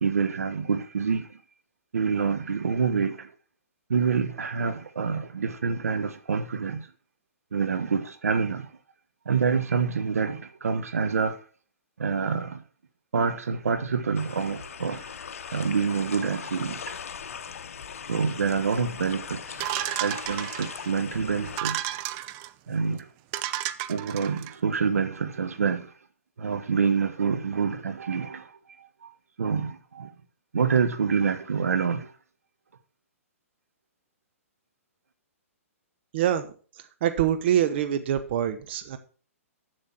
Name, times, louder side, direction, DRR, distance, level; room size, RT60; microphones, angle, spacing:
voice 1, 0.0-1.4 1.9-3.3 3.9-6.9 7.5-8.7 9.2-11.4 12.0-12.6 13.1-15.2 15.5-17.0 18.1-19.6 20.0-21.8 22.7-23.1 23.9-25.9 26.4-28.5 28.8-29.1 29.4-30.1 30.5-32.1, right 5 dB, 90° right, 1.2 m, -27 dB
sound 1, 14.2-21.6, left 7 dB, 70° left, 1.0 m, -40 dB
sound 2, 19.6-20.9 21.5-22.5 23.0-23.1 23.3-24.5, right 14 dB, 30° right, 0.5 m, -32 dB
voice 2, 36.1-36.5 37.0-39.0, right 10 dB, 50° right, 1.0 m, -25 dB
7.7 x 7.2 x 5.9 m
hypercardioid pair, 145°, 8 cm